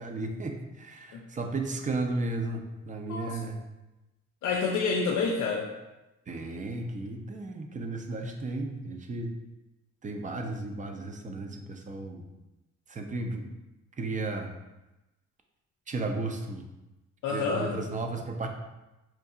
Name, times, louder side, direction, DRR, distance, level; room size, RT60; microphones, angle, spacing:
voice 1, 0.0-3.6 6.3-9.3 10.0-12.3 12.9-13.5 14.0-14.5 15.9-16.6 17.3-18.5, right 2 dB, 25° right, 4 dB, 0.5 m, -34 dB
voice 2, 3.1-3.4 4.4-5.7 17.2-17.8, left 4 dB, 75° left, -1 dB, 0.5 m, -28 dB
4.6 x 2.7 x 2.3 m, 1.0 s
cardioid pair, 90°, 30 cm